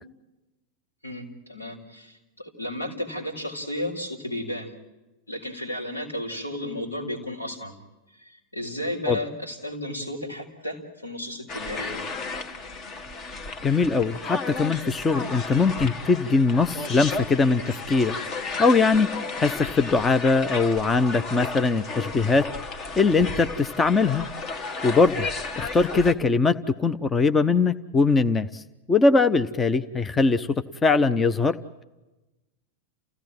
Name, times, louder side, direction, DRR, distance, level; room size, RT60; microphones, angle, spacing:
voice 1, 1.0-4.7 5.3-7.8 8.1-12.0, left 1 dB, 85° left, 0 dB, 4.7 m, -33 dB
sound 1, 11.5-26.1, left 3 dB, 35° left, 1.6 m, -34 dB
voice 2, 13.6-17.6 17.9-18.2 18.6-19.1 19.4-22.4 23.0-24.2 24.8-25.3 25.6-28.6 28.9-30.5 30.8-31.6, left 4 dB, 15° left, 12 dB, 0.8 m, -21 dB
29.0 x 16.5 x 9.2 m, 1.1 s
figure-of-eight pair, 90°, 0 cm